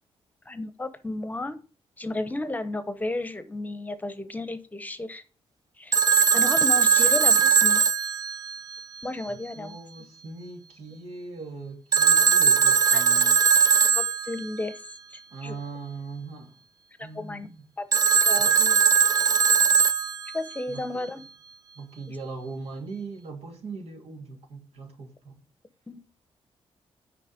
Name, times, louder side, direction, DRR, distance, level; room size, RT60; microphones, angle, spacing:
voice 1, 0.5-1.6 2.0-5.2 5.8-6.0 6.3-7.8 9.0-9.8 12.9-13.0 13.9-14.8 15.4-15.6 17.0-17.5 17.8-18.8 20.3-21.2 25.9-26.0, left 2 dB, 15° left, 0.9 m, -33 dB
Telephone, 5.9-9.0 11.9-14.5 17.9-20.6, right 6 dB, 35° right, 0.3 m, -20 dB
voice 2, 9.3-13.4 15.3-16.5 17.0-17.7 18.4-18.6 20.7-21.0 21.8-25.4, right 3 dB, 80° right, 2.6 m, -40 dB
9.2 x 5.4 x 5.2 m
wide cardioid pair, 125°, 10 cm